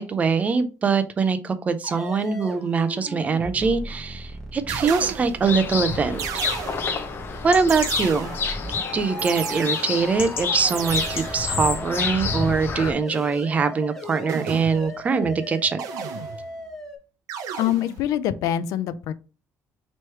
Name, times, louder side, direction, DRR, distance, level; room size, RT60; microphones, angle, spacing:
voice 1, 0.0-6.2 7.4-8.3 8.9-15.8, right 5 dB, 25° right, 0.4 m, -23 dB
sound 1, 1.8-12.0 12.3-17.0, equal, 5° left, 1.0 m, -38 dB
sound 2, 3.9-4.2 4.7-5.5 6.2-7.1 7.7-8.6 9.2-10.1 10.7-11.6 14.3-15.0 15.8-16.6 17.3-18.1, right 8 dB, 80° right, 0.5 m, -33 dB
sound 3, 5.4-12.9, left 5 dB, 40° left, 0.6 m, -28 dB
voice 2, 17.6-19.1, left 11 dB, 85° left, 0.4 m, -24 dB
3.1 x 3.1 x 4.5 m
cardioid pair, 155°, 6 cm